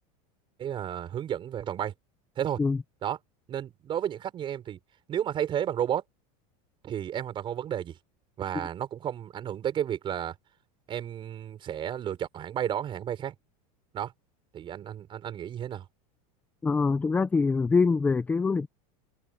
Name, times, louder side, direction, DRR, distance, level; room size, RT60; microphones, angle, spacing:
voice 1, 0.6-1.9 2.4-2.6 3.0-3.2 3.5-4.8 5.1-6.0 6.8-8.0 8.4-10.4 10.9-13.3 13.9-14.1 14.5-15.9, right 10 dB, 25° right, 5.2 m, -32 dB
voice 2, 16.6-18.7, left 4 dB, 10° left, 0.5 m, -24 dB
supercardioid pair, 160°, 19 cm